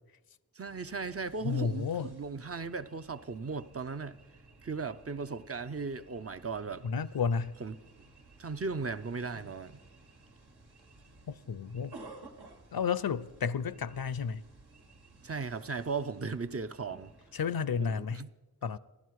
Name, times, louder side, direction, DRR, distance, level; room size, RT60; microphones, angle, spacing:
voice 1, 0.5-4.2 4.6-6.9 7.6-7.7 8.4-9.8 15.2-17.1 17.8-18.3, right 4 dB, 40° right, 0.5 m, -37 dB
sound 1, 0.7-17.9, right 2 dB, 80° right, 1.5 m, -56 dB
voice 2, 1.4-2.1 6.8-7.5 11.3-11.9 12.7-14.4 17.3-18.2 18.6-18.8, left 6 dB, 65° left, 0.6 m, -32 dB
14.5 x 11.5 x 4.7 m
wide cardioid pair, 60°, 39 cm